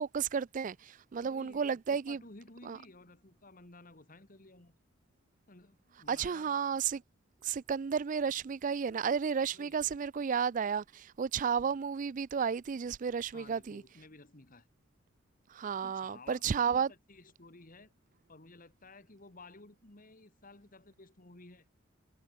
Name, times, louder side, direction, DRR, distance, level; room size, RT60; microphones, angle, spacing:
voice 1, 0.0-2.2 2.7-2.8 6.1-7.0 7.4-13.8 15.5-16.9, right 6 dB, 40° right, 0.4 m, -32 dB
voice 2, 1.2-4.8 5.5-6.6 9.4-10.0 13.3-14.7 15.8-17.9 18.3-21.7, left 2 dB, 45° left, 2.3 m, -55 dB
head